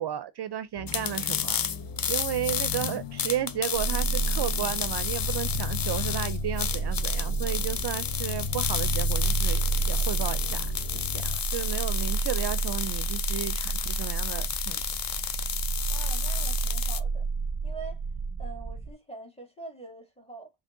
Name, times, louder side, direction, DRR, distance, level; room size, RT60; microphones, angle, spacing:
voice 1, 0.0-1.6 2.1-10.6 10.9-14.8, right 10 dB, 55° right, 0.5 m, -33 dB
sound 1, 0.8-11.4, left 7 dB, 75° left, 0.9 m, -36 dB
sound 2, 0.9-17.0, left 8 dB, 45° left, 0.6 m, -32 dB
sound 3, 3.7-18.9, right 4 dB, 25° right, 1.1 m, -31 dB
voice 2, 15.9-17.3 17.6-18.0 18.4-20.5, right 3 dB, 10° left, 2.5 m, -44 dB
5.6 x 3.4 x 2.6 m
cardioid pair, 55°, 50 cm